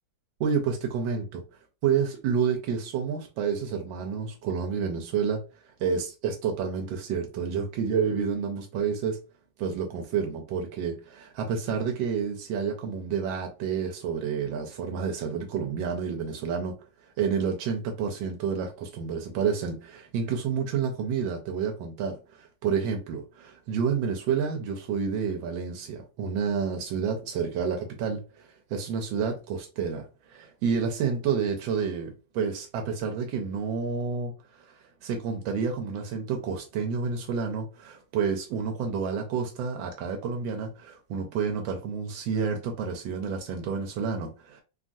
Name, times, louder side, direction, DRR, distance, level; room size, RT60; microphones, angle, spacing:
voice 1, 0.4-1.4 1.8-5.4 5.8-9.2 9.6-16.8 17.2-44.6, right 6 dB, 85° right, 1.3 m, -29 dB
3.1 x 2.3 x 2.5 m
omnidirectional pair, 2.0 m